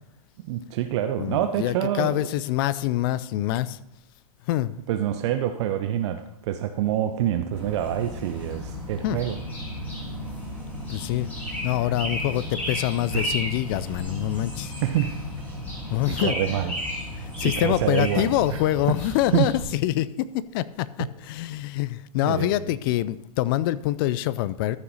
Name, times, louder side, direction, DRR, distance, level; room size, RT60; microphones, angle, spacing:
voice 1, 0.4-2.3 4.9-9.4 13.1-13.3 14.8-15.2 16.1-16.7 17.4-18.6 19.3-19.5 22.2-22.6, right 11 dB, 45° right, 8 dB, 0.6 m, -26 dB
voice 2, 1.2-3.8 4.5-4.8 9.0-9.2 10.9-11.3 11.6-14.7 15.9-16.4 17.2-24.8, left 14 dB, 35° left, 17 dB, 0.4 m, -25 dB
sound 1, 7.5-19.6, equal, 10° left, 2.8 m, -33 dB
13.5 x 5.6 x 4.1 m, 0.84 s
hypercardioid pair, 130°, 20 cm